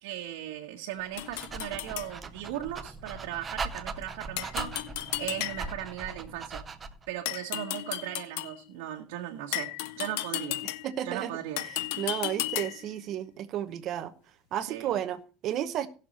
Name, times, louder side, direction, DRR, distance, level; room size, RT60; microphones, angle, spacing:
voice 1, 0.0-4.9 5.2-6.6 7.1-9.7 10.0-10.6 11.0-11.6 14.6-14.9, right 12 dB, 80° right, -1 dB, 1.5 m, -37 dB
Dog, 1.0-7.1, right 4 dB, 20° right, 0.7 m, -40 dB
sound 1, 1.2-2.1 4.4-5.9 7.3-8.6 9.5-11.0 11.6-12.9, left 15 dB, 75° left, 0.7 m, -34 dB
voice 2, 10.8-11.4 12.0-14.1 14.5-15.9, right 11 dB, 40° right, 11 dB, 1.0 m, -32 dB
16.5 x 6.6 x 4.2 m, 0.35 s
cardioid pair, 160°, 0 cm